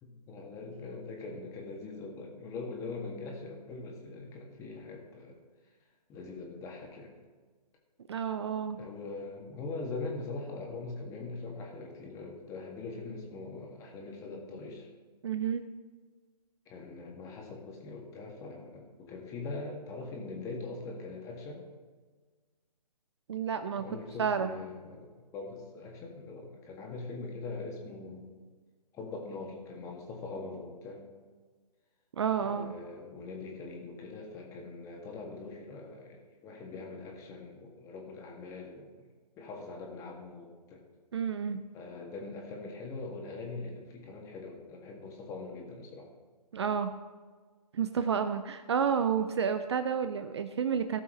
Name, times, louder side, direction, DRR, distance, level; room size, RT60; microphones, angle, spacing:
voice 1, 0.0-5.4 6.1-7.1 8.8-14.9 16.7-21.7 23.8-28.3 28.9-31.0 32.4-38.9 39.4-40.8 41.7-46.1, left 3 dB, 15° left, 0 dB, 1.8 m, -42 dB
voice 2, 8.1-8.8 15.2-15.6 23.3-23.9 24.2-24.5 32.2-32.7 41.1-41.6 46.5-46.9 47.7-51.0, right 7 dB, 40° right, 9 dB, 0.6 m, -30 dB
17.5 x 7.1 x 3.2 m, 1.4 s
figure-of-eight pair, 140°, 21 cm